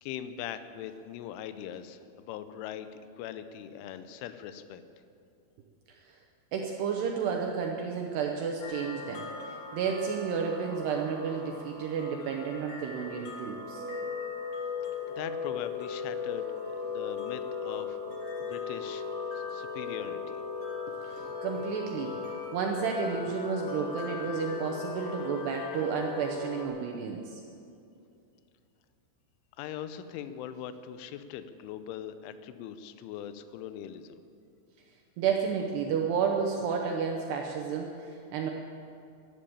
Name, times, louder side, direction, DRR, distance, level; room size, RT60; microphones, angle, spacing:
voice 1, 0.0-2.9 3.2-4.8 15.1-16.5 16.8-18.0 18.4-19.1 19.3-20.4 25.2-25.7 29.6-34.2, left 10 dB, 80° left, 11 dB, 2.9 m, -41 dB
voice 2, 6.5-13.8 21.0-27.4 35.2-38.5, right 6 dB, 85° right, 1 dB, 2.4 m, -32 dB
sound 1, 8.6-26.7, left 5 dB, 50° left, 2.7 m, -38 dB
12.0 x 11.0 x 8.6 m, 2.5 s
omnidirectional pair, 6.0 m